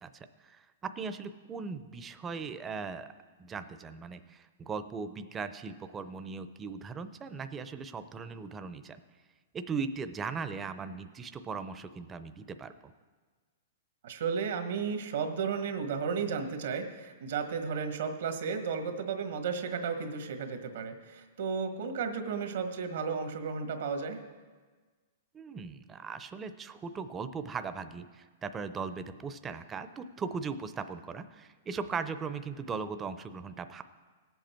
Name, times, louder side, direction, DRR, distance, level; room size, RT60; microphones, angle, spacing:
voice 1, 0.0-0.6 1.0-3.1 3.4-9.0 9.5-12.9 25.3-33.8, right 5 dB, 20° right, 10 dB, 0.6 m, -38 dB
voice 2, 14.0-24.2, right 5 dB, 75° right, 6 dB, 1.4 m, -33 dB
18.0 x 7.8 x 4.5 m, 1.4 s
hypercardioid pair, 135°, 0 cm